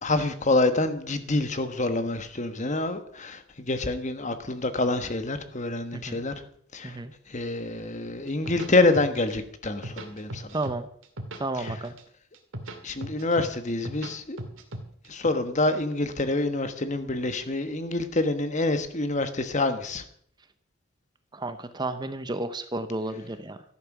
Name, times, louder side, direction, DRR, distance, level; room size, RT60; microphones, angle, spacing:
voice 1, 0.0-6.3 6.7-7.0 7.3-10.5 12.8-14.4 15.1-20.0, left 2 dB, 35° left, 9 dB, 1.3 m, -26 dB
sound 1, 8.3-9.3 9.6-10.8 11.0-12.0 12.3-14.1 14.4-15.3, right 1 dB, 75° right, 2.2 m, -37 dB
voice 2, 10.5-10.9 11.4-11.9 21.3-23.6, right 2 dB, 20° right, 10 dB, 0.8 m, -32 dB
14.0 x 10.5 x 6.1 m, 0.64 s
head